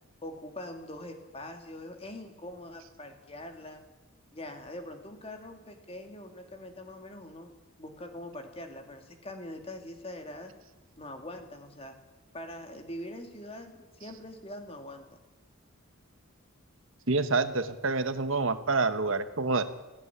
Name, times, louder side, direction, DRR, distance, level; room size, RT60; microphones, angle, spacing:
voice 1, 0.2-3.8 4.3-7.5 7.8-10.5 11.0-12.0 12.3-15.2, left 1 dB, 25° left, 5 dB, 2.6 m, -43 dB
voice 2, 17.1-19.6, right 3 dB, 65° right, 11 dB, 1.2 m, -27 dB
18.0 x 15.5 x 9.9 m, 1.1 s
head